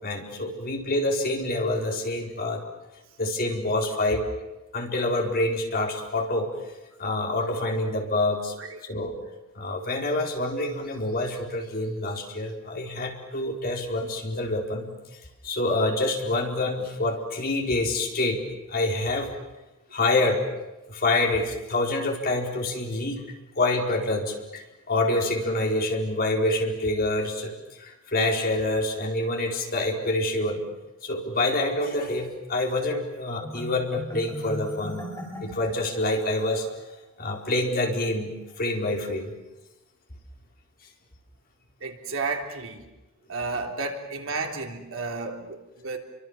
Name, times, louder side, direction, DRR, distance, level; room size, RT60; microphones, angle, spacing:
voice 1, 0.0-2.6 3.2-4.2 4.7-6.5 7.0-8.5 8.9-9.1 9.6-14.9 15.4-18.4 18.7-19.3 19.9-20.4 20.9-23.2 23.6-27.5 27.8-30.6 31.0-35.1 35.4-36.7 37.2-39.3, left 2 dB, 45° left, 2 dB, 4.3 m, -26 dB
Marimba xylophone, 33.4-36.8, equal, 15° left, 6.2 m, -39 dB
voice 2, 41.8-42.8 43.3-46.0, right 3 dB, 65° right, 3 dB, 3.6 m, -32 dB
29.5 x 24.5 x 7.3 m, 1.0 s
head